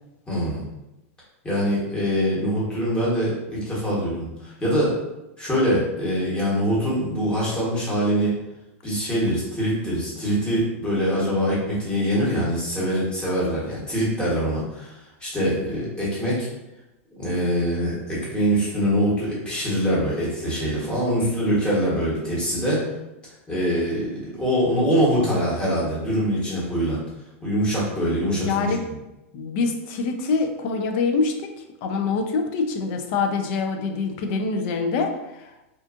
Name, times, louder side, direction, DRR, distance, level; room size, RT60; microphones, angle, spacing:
voice 1, 0.3-0.6 1.4-5.0 5.4-8.3 8.8-16.5 17.2-22.8 23.5-27.0 27.4-28.7, equal, 15° left, -7 dB, 1.1 m, -24 dB
voice 2, 28.3-28.8 29.3-31.3 31.8-35.5, left 4 dB, 50° left, 5 dB, 0.4 m, -25 dB
2.5 x 2.4 x 2.4 m, 0.96 s
supercardioid pair, 140°, 7 cm